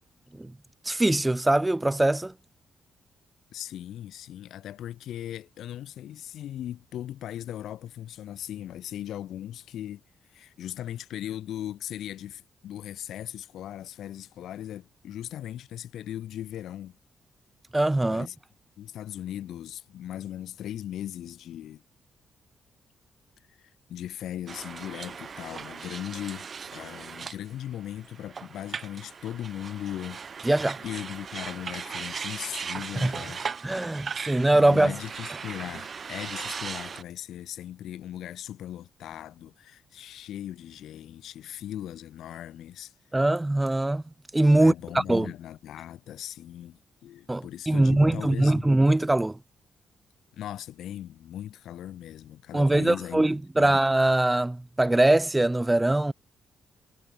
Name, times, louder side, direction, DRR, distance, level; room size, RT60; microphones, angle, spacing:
voice 1, 0.8-2.3 17.7-18.3 30.4-30.8 33.0-33.1 33.6-34.9 43.1-44.0 44.3-45.3 47.3-49.4 52.5-56.1, right 1 dB, 15° right, 1.2 m, -22 dB
voice 2, 3.5-10.0 10.3-17.0 18.1-18.4 18.8-21.8 23.5-30.2 30.8-33.4 34.0-42.9 44.5-48.7 50.3-53.7, left 11 dB, 80° left, 2.0 m, -38 dB
sound 1, 24.5-37.0, right 6 dB, 50° right, 3.2 m, -38 dB
supercardioid pair, 60°, 0 cm